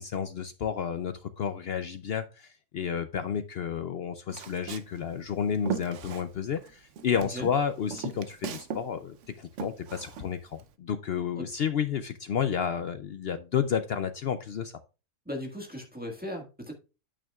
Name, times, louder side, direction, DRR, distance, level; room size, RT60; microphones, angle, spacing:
voice 1, 0.0-14.7, left 7 dB, 65° left, 0.6 m, -31 dB
Walk footsteps, 4.3-6.7 7.0-8.9 9.1-10.7, right 7 dB, 65° right, 1.0 m, -38 dB
voice 2, 15.2-16.7, equal, 5° right, 1.6 m, -37 dB
9.0 x 8.7 x 2.3 m
omnidirectional pair, 1.5 m